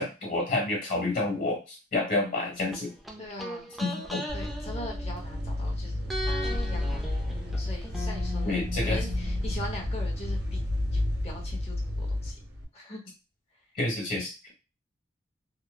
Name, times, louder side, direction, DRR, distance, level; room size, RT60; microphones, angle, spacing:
voice 1, 0.0-2.9 3.8-4.2 8.4-9.0 13.7-14.3, left 2 dB, 50° left, -1 dB, 1.3 m, -29 dB
sound 1, 2.7-5.7 6.1-9.9 10.2-10.3, equal, ahead, 0.4 m, -39 dB
voice 2, 3.2-3.7 4.3-10.6 10.8-12.4 12.7-13.0, left 2 dB, 35° left, 0 dB, 0.8 m, -42 dB
sound 2, 4.3-12.6, left 1 dB, 65° right, 0.7 m, -31 dB
2.9 x 2.1 x 2.2 m, 0.29 s
head